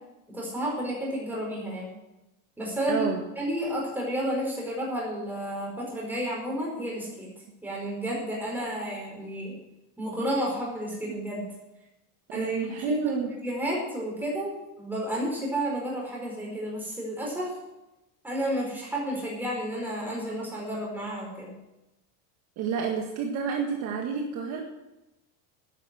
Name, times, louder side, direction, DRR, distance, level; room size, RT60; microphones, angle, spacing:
voice 1, 0.3-1.9 2.6-3.1 3.4-7.3 7.6-9.6 10.0-11.4 12.3-17.5 18.2-21.5, equal, 5° right, -3 dB, 4.9 m, -31 dB
voice 2, 2.9-3.2 12.3-13.3 22.6-24.6, right 6 dB, 45° right, 1 dB, 1.7 m, -29 dB
12.0 x 10.5 x 7.6 m, 0.96 s
cardioid pair, 175°, 37 cm